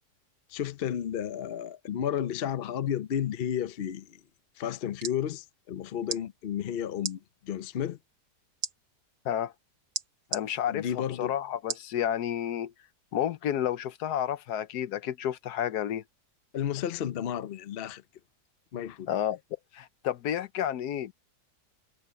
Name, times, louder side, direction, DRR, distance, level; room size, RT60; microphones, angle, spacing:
voice 1, 0.5-4.2 4.6-7.2 7.4-8.0 10.7-11.3 16.5-18.0 18.7-19.1, left 9 dB, 55° left, 0.7 m, -32 dB
sound 1, 4.8-5.2 6.0-6.2 7.0-7.2 8.6-8.7 9.9-10.4 11.7-11.9 12.5-12.6, right 7 dB, 70° right, 1.8 m, -34 dB
voice 2, 10.3-12.7 13.1-16.0 19.1-19.4 19.7-21.1, left 10 dB, 75° left, 1.3 m, -31 dB
omnidirectional pair, 1.8 m